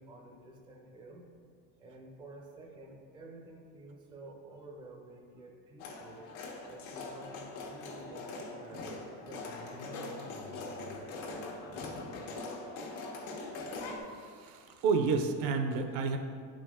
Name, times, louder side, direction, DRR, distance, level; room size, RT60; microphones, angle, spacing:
voice 1, 0.0-1.3 1.8-6.2 6.7-11.5, right 2 dB, 10° right, 0 dB, 0.5 m, -51 dB
sound 1, 5.8-14.0, left 3 dB, 80° left, 1.3 m, -42 dB
sound 2, 9.5-12.0, left 2 dB, 50° left, 0.8 m, -52 dB
voice 2, 14.1-16.2, right 4 dB, 60° right, 6 dB, 0.7 m, -30 dB
9.1 x 5.2 x 3.6 m, 2.1 s
cardioid pair, 170°, 42 cm